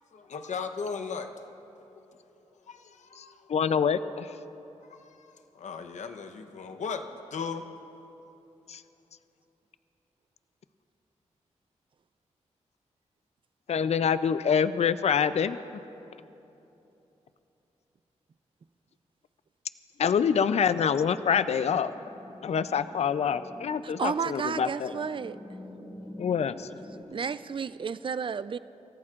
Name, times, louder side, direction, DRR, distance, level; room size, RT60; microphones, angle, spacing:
voice 1, 0.1-1.3 2.7-3.5 4.9-7.7, left 5 dB, 75° left, 6 dB, 0.9 m, -37 dB
voice 2, 3.5-4.3 8.7-8.8 13.7-15.6 20.0-21.9 22.4-24.9 26.2-26.7, left 7 dB, 60° left, 13 dB, 0.4 m, -26 dB
sound 1, 21.5-27.0, left 1 dB, 30° left, 3.6 m, -46 dB
voice 3, 23.8-25.4 27.1-28.6, right 6 dB, 45° right, 15 dB, 0.4 m, -32 dB
27.0 x 14.5 x 2.5 m, 3.0 s
cardioid pair, 55°, 12 cm